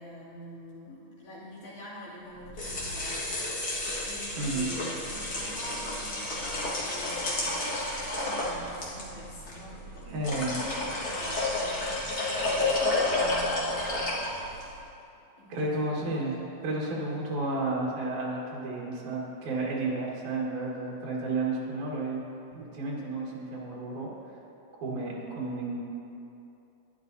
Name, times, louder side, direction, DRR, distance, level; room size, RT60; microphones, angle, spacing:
voice 1, 0.0-7.7 8.0-10.1 10.5-14.9 15.4-16.0, left 1 dB, 70° left, -10 dB, 3.9 m, -46 dB
sound 1, 2.4-14.7, left 2 dB, 40° left, 1.7 m, -31 dB
voice 2, 4.4-4.7 10.1-10.6 15.5-16.4 16.6-22.2 22.5-24.1 24.8-25.8, right 2 dB, 80° right, -4 dB, 3.0 m, -32 dB
13.0 x 9.9 x 2.7 m, 2.8 s
omnidirectional pair, 3.4 m